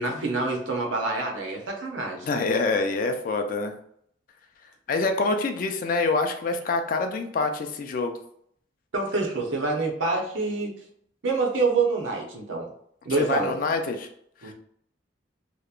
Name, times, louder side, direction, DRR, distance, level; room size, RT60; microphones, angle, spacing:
voice 1, 0.0-2.3 8.9-10.7 11.2-12.6 13.1-13.5 14.4-14.5, right 3 dB, 85° right, 1 dB, 0.6 m, -26 dB
voice 2, 2.2-3.7 4.9-8.1 13.2-14.1 14.4-14.5, left 3 dB, 45° left, 5 dB, 0.3 m, -26 dB
2.8 x 2.1 x 2.3 m, 0.68 s
head